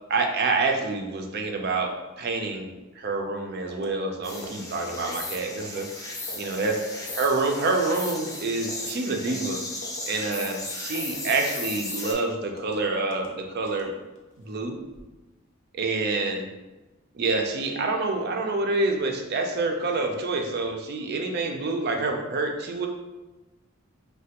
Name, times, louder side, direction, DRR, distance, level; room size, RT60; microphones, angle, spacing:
voice 1, 0.1-5.9 6.3-6.8 7.1-9.6 10.1-13.9 14.5-14.8 15.7-16.5 17.1-22.9, right 3 dB, 55° right, 3 dB, 0.4 m, -27 dB
sound 1, 3.7-3.9 4.3-4.5 4.9-5.2 5.6-5.8 6.3-6.5 6.9-7.1 7.5-7.7 8.1-8.3 8.7-8.9 9.3-9.4 9.8-10.1 10.4-10.6 10.9-11.1 11.5-11.7 12.0-12.2 12.6-12.8 13.1-13.3 13.7-14.3 14.7-15.0, left 2 dB, 75° left, 0.5 m, -41 dB
sound 2, 4.2-12.1, left 2 dB, 15° left, 0.4 m, -36 dB
3.2 x 2.2 x 2.8 m, 1.1 s
head